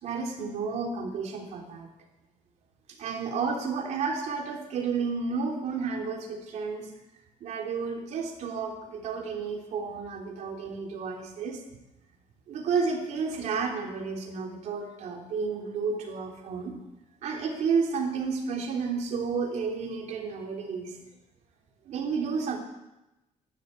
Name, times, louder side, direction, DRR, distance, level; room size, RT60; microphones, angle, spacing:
voice 1, 0.0-1.9 2.9-6.9 7.4-11.6 12.5-16.7 17.2-21.0 21.8-22.6, right 5 dB, 60° right, 1 dB, 3.3 m, -31 dB
12.5 x 11.5 x 8.5 m, 0.96 s
cardioid pair, 155°, 13 cm